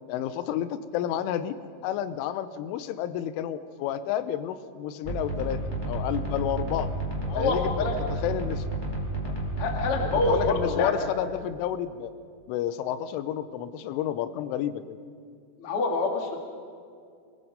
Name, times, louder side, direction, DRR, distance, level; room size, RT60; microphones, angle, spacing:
voice 1, 0.1-1.6 1.8-5.6 5.9-6.9 7.3-7.8 8.1-8.7 9.2-9.3 10.3-12.1 12.5-15.0, left 10 dB, 80° left, 12 dB, 3.2 m, -30 dB
sound 1, 5.0-10.5, right 2 dB, 10° left, 4.0 m, -31 dB
voice 2, 7.3-7.9 9.6-10.9 15.6-16.4, left 3 dB, 50° left, 2 dB, 1.7 m, -26 dB
23.0 x 22.5 x 5.3 m, 2.3 s
omnidirectional pair, 6.0 m